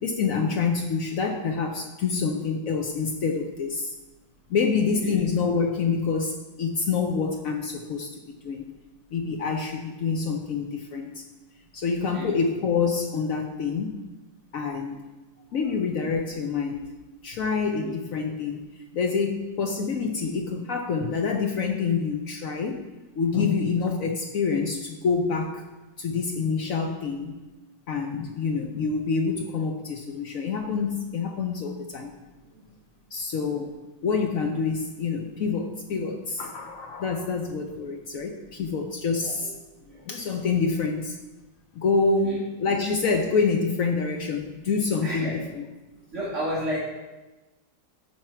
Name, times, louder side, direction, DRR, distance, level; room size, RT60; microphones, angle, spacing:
voice 1, 0.0-3.9 4.5-8.7 9.1-11.2 11.7-14.0 14.5-15.1 15.5-17.0 17.2-18.6 18.9-22.8 23.2-25.6 26.0-27.3 27.9-32.1 33.1-39.5 40.1-41.2 41.7-45.6, left 5 dB, 65° left, 4 dB, 0.9 m, -27 dB
voice 2, 39.8-40.1 42.2-42.4 45.0-45.4 46.1-46.8, equal, 45° right, -7 dB, 1.8 m, -33 dB
13.0 x 4.6 x 4.5 m, 1.1 s
omnidirectional pair, 2.0 m